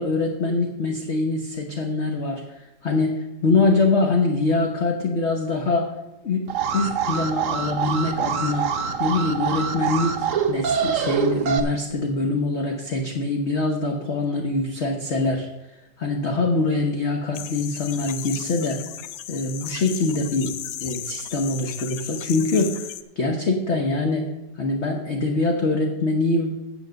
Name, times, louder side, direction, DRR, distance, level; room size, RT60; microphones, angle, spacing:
voice 1, 0.0-5.9 6.2-6.5 6.7-15.5 16.0-18.8 19.3-24.3 24.6-26.6, left 3 dB, 45° left, 2 dB, 1.0 m, -24 dB
Alarm, 6.5-11.6, right 7 dB, 55° right, 0.9 m, -25 dB
sound 1, 17.3-23.0, left 11 dB, 85° left, 0.7 m, -35 dB
9.4 x 7.2 x 6.4 m, 0.96 s
omnidirectional pair, 2.1 m